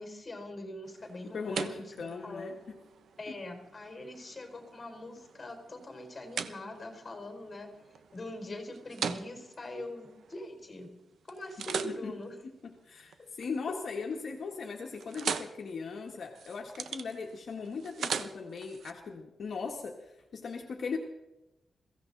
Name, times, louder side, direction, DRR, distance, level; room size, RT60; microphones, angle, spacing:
voice 1, 0.0-1.9 2.2-2.6 3.2-7.7 8.1-11.0 11.3-12.3 13.2-13.3, left 1 dB, 25° left, 3 dB, 4.4 m, -42 dB
sound 1, 0.8-10.8 11.3-13.6 13.9-14.3 14.6-18.9, right 6 dB, 70° right, 1.0 m, -41 dB
voice 2, 1.2-2.8 3.3-3.4 11.8-12.2 12.4-21.0, left 5 dB, 55° left, 0 dB, 1.7 m, -39 dB
22.0 x 16.0 x 4.0 m, 0.96 s
wide cardioid pair, 160°, 0 cm